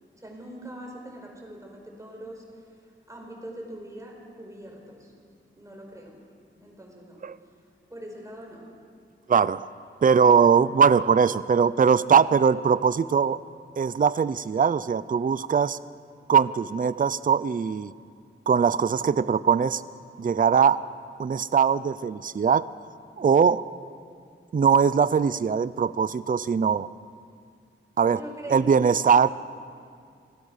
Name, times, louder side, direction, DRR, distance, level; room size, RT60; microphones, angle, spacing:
voice 1, 0.2-5.1 5.6-6.2 6.6-7.6 7.9-8.7 28.2-29.0, right 1 dB, 15° right, 0 dB, 5.5 m, -42 dB
voice 2, 9.3-9.7 10.0-13.4 13.8-15.8 16.3-17.9 18.5-19.8 20.2-20.8 21.2-22.7 23.2-23.6 24.5-26.9 28.0-28.2 28.5-29.3, right 6 dB, 45° right, 16 dB, 0.5 m, -21 dB
28.0 x 18.5 x 6.5 m, 2.3 s
wide cardioid pair, 110°, 20 cm